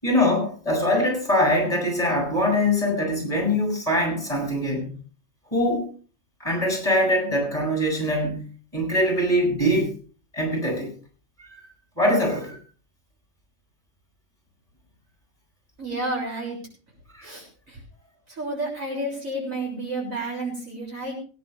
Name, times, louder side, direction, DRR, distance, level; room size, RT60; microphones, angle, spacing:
voice 1, 0.0-4.9 5.5-5.9 6.4-8.4 8.7-9.9 10.3-10.9 11.4-11.7 12.0-12.6 17.1-17.3, left 1 dB, 25° left, 0 dB, 8.1 m, -23 dB
voice 2, 15.8-16.6 17.2-17.8 18.3-21.1, right 2 dB, 75° right, -2 dB, 7.1 m, -31 dB
22.5 x 11.0 x 3.5 m, 0.41 s
omnidirectional pair, 1.4 m